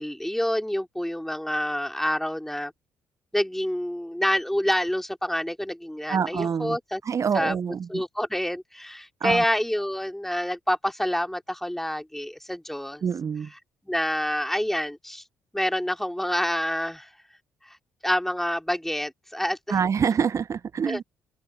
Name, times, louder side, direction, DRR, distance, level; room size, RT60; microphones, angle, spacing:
voice 1, 0.0-2.7 3.3-7.0 7.3-7.6 7.9-13.0 13.9-15.2 15.5-17.1 17.7-17.8 18.0-19.8 20.9-21.0, equal, 5° left, 3.8 m, -27 dB
voice 2, 6.1-6.8 7.0-8.0 9.2-9.4 13.0-13.5 19.7-21.0, right 7 dB, 40° right, 1.3 m, -26 dB
open air
figure-of-eight pair, 45°, 8 cm